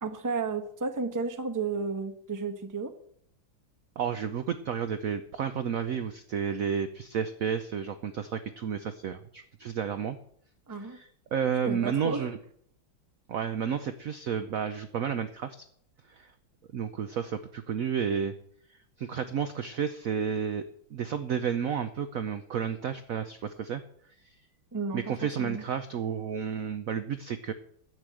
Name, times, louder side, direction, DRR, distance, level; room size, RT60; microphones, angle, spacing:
voice 1, 0.0-2.9 10.7-11.0 11.7-12.3 24.7-25.6, right 4 dB, 15° right, 7 dB, 0.6 m, -33 dB
voice 2, 4.0-10.2 10.7-12.4 13.3-15.6 16.1-16.3 16.7-18.3 19.0-20.6 20.9-23.8 24.2-24.3 24.9-27.5, right 7 dB, 70° right, 10 dB, 0.8 m, -31 dB
11.0 x 8.4 x 7.7 m, 0.66 s
omnidirectional pair, 2.2 m